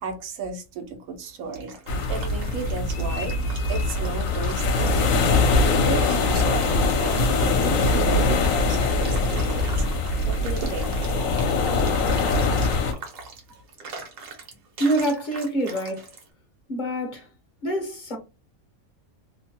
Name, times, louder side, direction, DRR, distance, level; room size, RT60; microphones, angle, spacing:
voice 1, 0.0-1.8 2.1-9.7 10.0-11.0 13.5-13.6, right 4 dB, 80° right, 1.1 m, -35 dB
sound 1, 1.2-16.3, right 4 dB, 65° right, 1.2 m, -42 dB
sound 2, 1.9-12.9, left 3 dB, 70° left, 1.0 m, -22 dB
voice 2, 14.8-16.1 16.7-17.3 17.6-18.2, right 1 dB, 40° left, 0.7 m, -26 dB
2.9 x 2.1 x 2.8 m
omnidirectional pair, 1.5 m